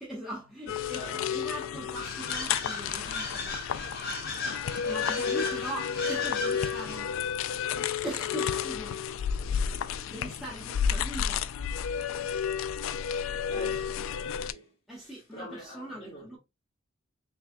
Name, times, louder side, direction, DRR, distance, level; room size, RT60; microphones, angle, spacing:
voice 1, 0.0-3.6 4.4-7.6 8.0-9.0 9.8-11.5 14.9-16.4, right 1 dB, ahead, 1.1 m, -41 dB
sound 1, 0.7-14.5, left 7 dB, 80° left, 0.3 m, -31 dB
voice 2, 0.9-1.3 9.9-10.1 13.5-14.0 14.3-14.7 15.0-16.4, left 1 dB, 30° left, 1.9 m, -45 dB
sound 2, 2.0-7.1, left 3 dB, 55° left, 1.4 m, -36 dB
4.8 x 3.3 x 2.2 m
head